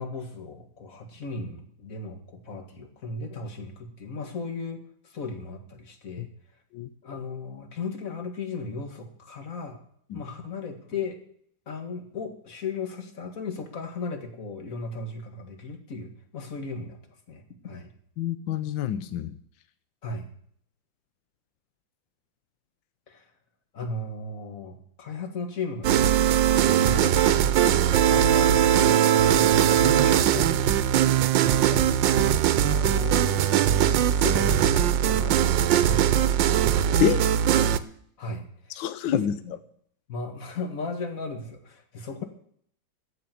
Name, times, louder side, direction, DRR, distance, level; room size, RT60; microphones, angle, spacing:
voice 1, 0.0-6.3 7.0-9.8 10.1-11.2 11.7-17.0 17.3-17.9 20.0-20.3 23.1-23.3 23.7-30.6 31.1-33.8 34.1-36.8 37.1-37.3 38.2-39.5 40.1-42.2, left 3 dB, 45° left, 6 dB, 2.2 m, -36 dB
voice 2, 18.2-19.3 37.0-37.2 38.8-39.4, left 9 dB, 75° left, 12 dB, 1.4 m, -26 dB
sound 1, 25.8-37.8, right 10 dB, 75° right, 1.4 m, -20 dB
14.5 x 6.0 x 9.3 m, 0.63 s
omnidirectional pair, 2.1 m